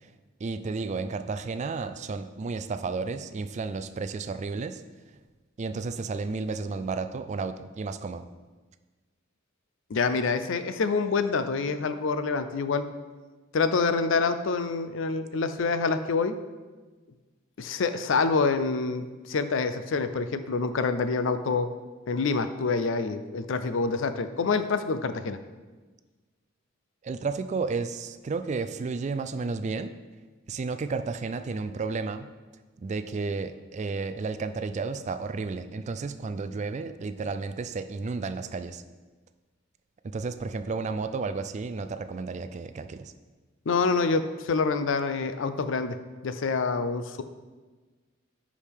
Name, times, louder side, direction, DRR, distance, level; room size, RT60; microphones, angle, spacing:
voice 1, 0.4-4.8 5.6-8.2 27.0-29.9 30.5-32.3 32.8-38.8 40.0-43.1, right 4 dB, 35° right, 11 dB, 0.3 m, -32 dB
voice 2, 9.9-12.9 13.5-16.3 17.6-21.7 22.1-25.4 43.7-46.0 46.2-47.2, left 4 dB, 65° left, 11 dB, 0.5 m, -26 dB
9.8 x 4.9 x 3.5 m, 1.3 s
head